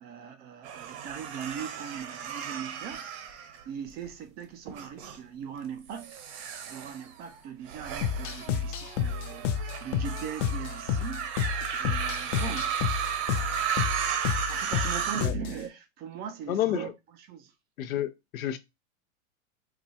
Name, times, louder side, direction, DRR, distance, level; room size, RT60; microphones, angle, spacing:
voice 1, 0.0-6.2 6.7-12.8 14.5-17.5, right 8 dB, 25° right, 0.3 m, -40 dB
sound 1, 0.6-4.1 4.7-5.2 5.9-15.3, right 8 dB, 55° right, 1.0 m, -34 dB
sound 2, 8.0-15.6, left 8 dB, 40° left, 0.5 m, -30 dB
voice 2, 16.5-16.9 17.8-18.6, left 11 dB, 85° left, 0.7 m, -30 dB
4.6 x 2.3 x 2.7 m
hypercardioid pair, 120°, 40 cm